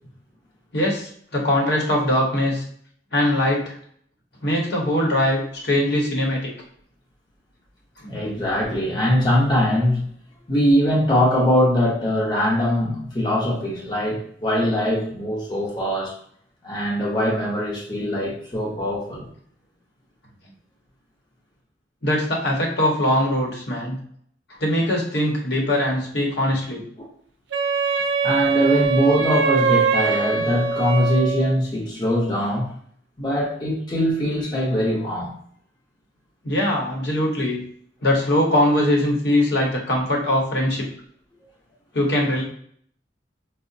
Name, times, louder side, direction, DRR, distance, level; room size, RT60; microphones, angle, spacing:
voice 1, 0.7-2.6 3.1-3.8 4.4-6.4 8.0-8.1 22.0-24.0 24.6-26.8 36.4-37.6 38.0-40.9 41.9-42.4, left 1 dB, 60° left, -1 dB, 0.9 m, -21 dB
voice 2, 8.1-10.1 10.5-16.1 16.6-19.3 27.0-27.1 28.2-32.7 33.2-35.3, equal, 25° left, -5 dB, 0.7 m, -22 dB
Wind instrument woodwind instrument, 27.5-31.6, right 5 dB, 70° right, 0.4 m, -22 dB
4.5 x 2.0 x 2.6 m, 0.62 s
head